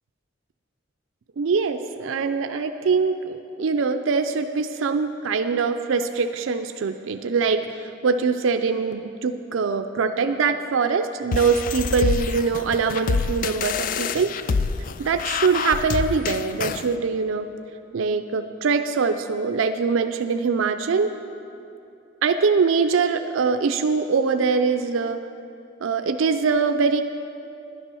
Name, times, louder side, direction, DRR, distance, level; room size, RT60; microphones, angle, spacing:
voice 1, 1.4-7.7 8.0-14.3 15.0-17.5 17.9-21.1 22.2-25.2 25.8-27.0, right 5 dB, 80° right, 8 dB, 0.4 m, -23 dB
sound 1, 11.3-16.9, left 5 dB, 45° left, 0.3 m, -26 dB
11.0 x 10.0 x 6.2 m, 2.7 s
head